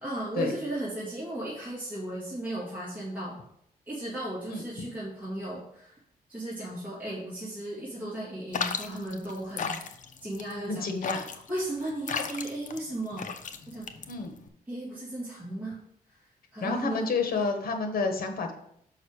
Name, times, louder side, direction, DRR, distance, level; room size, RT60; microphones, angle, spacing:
voice 1, 0.0-3.4 3.9-5.9 6.3-9.7 10.2-11.2 11.5-13.3 13.7-13.9 14.7-15.8 16.5-17.1, right 1 dB, 10° right, -8 dB, 2.2 m, -35 dB
voice 2, 4.5-4.9 10.7-11.2 14.1-14.3 16.6-18.5, left 4 dB, 75° left, 5 dB, 1.3 m, -30 dB
sound 1, 8.5-14.5, left 6 dB, 55° left, 0.7 m, -35 dB
6.5 x 5.4 x 4.8 m, 0.71 s
cardioid pair, 120°, 15 cm